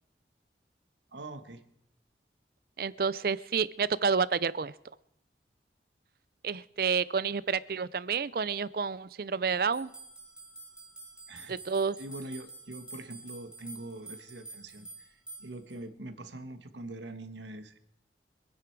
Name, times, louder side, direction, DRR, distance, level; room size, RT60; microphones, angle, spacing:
voice 1, 1.1-1.7 11.3-11.6 12.0-17.8, right 2 dB, 85° right, 9 dB, 1.4 m, -43 dB
voice 2, 2.8-4.7 6.4-9.9 11.5-12.0, right 5 dB, 55° right, 19 dB, 0.5 m, -29 dB
sound 1, 9.7-15.8, right 3 dB, 5° right, 2.4 m, -48 dB
25.5 x 9.7 x 4.6 m, 0.79 s
head